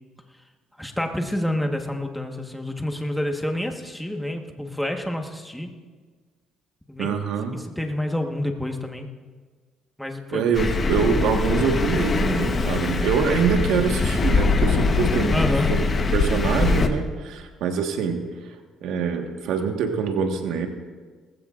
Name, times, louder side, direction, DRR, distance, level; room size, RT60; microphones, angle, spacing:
voice 1, 0.8-5.7 6.9-7.1 7.5-9.1 10.0-10.4 15.3-15.7, left 1 dB, 5° left, 4 dB, 1.4 m, -28 dB
voice 2, 7.0-7.6 10.3-15.3 15.6-15.8 16.1-18.2 18.8-20.7, right 6 dB, 80° right, 4 dB, 1.5 m, -24 dB
Thunder, 10.5-16.9, left 4 dB, 35° left, 1.1 m, -22 dB
19.5 x 15.5 x 2.5 m, 1.5 s
cardioid pair, 100°, 0 cm